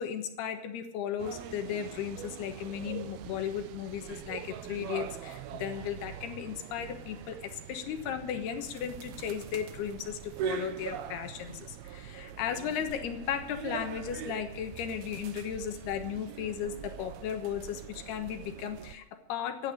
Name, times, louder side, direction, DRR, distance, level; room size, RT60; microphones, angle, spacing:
voice 1, 0.0-19.7, left 8 dB, 75° left, 7 dB, 3.2 m, -36 dB
sound 1, 1.2-18.9, right 9 dB, 75° right, 2.7 m, -42 dB
16.0 x 10.5 x 6.7 m, 0.85 s
omnidirectional pair, 4.8 m